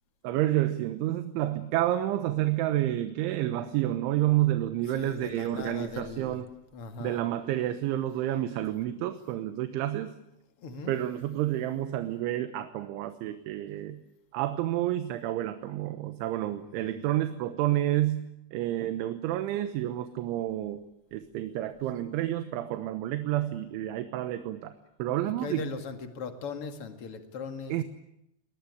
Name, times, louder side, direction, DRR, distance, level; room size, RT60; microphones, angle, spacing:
voice 1, 0.2-6.5 7.0-10.1 10.9-14.0 14.3-20.8 21.1-24.7 25.0-25.7 27.7-27.8, right 13 dB, 80° right, 9 dB, 3.5 m, -29 dB
voice 2, 4.9-6.4 6.7-7.2 10.6-10.9 16.6-17.0 25.2-27.8, left 5 dB, 45° left, 6 dB, 2.0 m, -39 dB
23.0 x 20.0 x 9.6 m, 0.81 s
omnidirectional pair, 5.4 m